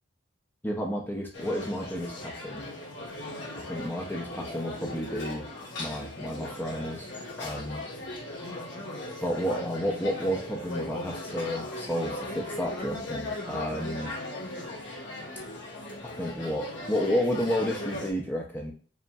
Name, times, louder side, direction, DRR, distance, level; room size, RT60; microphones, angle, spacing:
voice 1, 0.6-2.6 3.6-5.5 5.8-7.1 7.4-7.8 9.2-14.1 16.0-18.7, equal, 10° left, 0 dB, 0.5 m, -31 dB
sound 1, 1.3-18.1, left 1 dB, 70° left, 1.1 m, -38 dB
5.1 x 3.0 x 2.3 m, 0.41 s
head